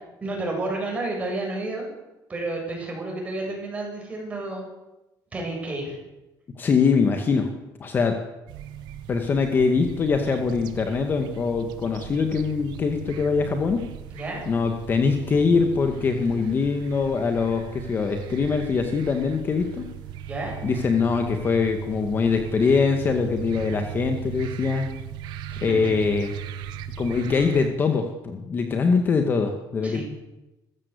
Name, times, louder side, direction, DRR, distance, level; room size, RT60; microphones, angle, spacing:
voice 1, 0.2-1.9 2.3-4.7 5.3-6.0 14.1-14.5 20.3-20.6 25.5-25.6 29.8-30.0, right 2 dB, 20° right, 0 dB, 7.9 m, -30 dB
voice 2, 6.6-7.5 7.8-8.2 9.1-13.8 14.5-19.8 20.6-24.9 25.6-26.3 27.0-30.0, left 5 dB, 30° left, 5 dB, 1.9 m, -23 dB
sound 1, 8.5-27.7, right 9 dB, 85° right, 1.8 m, -38 dB
25.5 x 15.0 x 8.3 m, 0.97 s
cardioid pair, 180°, 7 cm